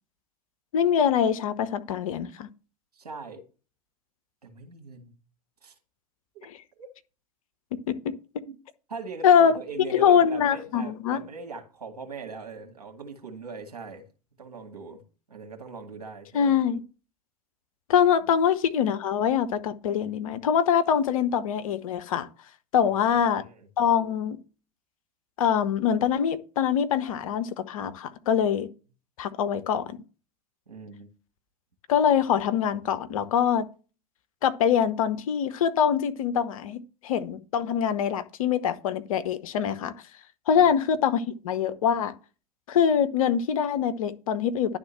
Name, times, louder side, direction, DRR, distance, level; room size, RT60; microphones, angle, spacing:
voice 1, 0.7-2.5 7.9-8.0 9.2-9.5 9.9-11.2 16.3-16.8 17.9-22.3 22.7-23.4 23.8-24.4 25.4-28.7 29.2-30.0 31.9-33.7 34.4-39.9 40.5-42.1 42.7-44.8, left 8 dB, 60° left, 0.8 m, -24 dB
voice 2, 2.9-3.4 4.4-5.2 5.6-5.7 6.3-6.5 6.8-6.9 8.4-8.6 8.9-14.0 14.4-15.0 15.3-16.5 22.8-23.7 30.7-31.1 40.5-40.7, right 4 dB, 75° right, 2.0 m, -41 dB
10.5 x 3.6 x 7.4 m
figure-of-eight pair, 85°, 20 cm